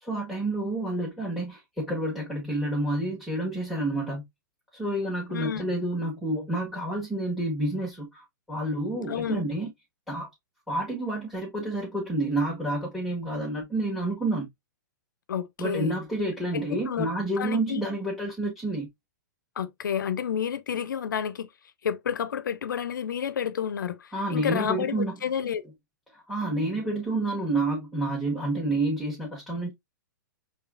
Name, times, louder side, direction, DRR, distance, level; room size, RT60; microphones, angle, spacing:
voice 1, 0.0-4.2 4.7-9.7 10.1-10.3 10.7-14.5 15.6-18.9 24.1-25.2 26.1-29.7, right 2 dB, ahead, 1.4 m, -29 dB
voice 2, 5.3-5.6 9.1-9.4 15.3-16.0 16.5-17.1 17.4-17.8 19.6-21.5 21.8-25.6, left 8 dB, 75° left, 0.6 m, -30 dB
4.8 x 3.0 x 2.3 m
hypercardioid pair, 115°, 11 cm